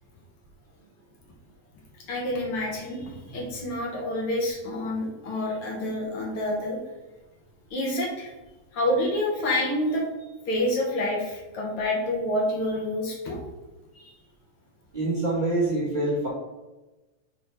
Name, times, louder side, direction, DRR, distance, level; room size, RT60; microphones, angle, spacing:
voice 1, 2.1-6.8 7.7-8.3 8.7-10.0 10.5-13.4, left 1 dB, 55° left, -2 dB, 1.9 m, -28 dB
voice 2, 14.9-16.3, right 2 dB, 35° right, -7 dB, 0.7 m, -25 dB
5.2 x 4.2 x 4.4 m, 1.1 s
omnidirectional pair, 3.3 m